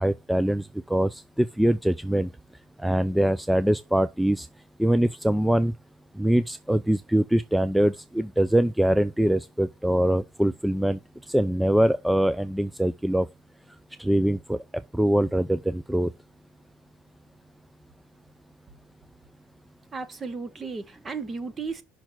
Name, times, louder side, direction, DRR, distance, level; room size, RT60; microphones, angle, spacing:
voice 1, 0.0-2.3 2.8-4.5 4.8-5.7 6.2-11.0 11.3-13.3 14.0-14.6 14.9-16.1, right 1 dB, 5° right, 0.3 m, -23 dB
voice 2, 19.9-21.8, right 4 dB, 25° right, 1.2 m, -34 dB
5.9 x 4.3 x 6.1 m
supercardioid pair, 115°, 0 cm